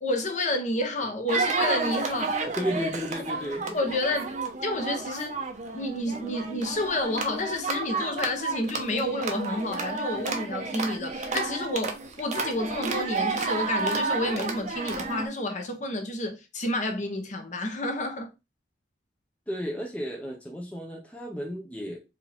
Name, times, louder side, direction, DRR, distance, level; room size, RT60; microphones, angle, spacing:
voice 1, 0.0-2.4 3.7-4.3 4.6-5.4 5.7-18.3, left 1 dB, 40° left, 0.9 m, -30 dB
sound 1, 1.3-15.3, right 4 dB, 40° right, 0.7 m, -31 dB
voice 2, 2.5-3.8 19.5-22.0, equal, 10° left, 0.5 m, -33 dB
4.7 x 2.7 x 3.4 m
head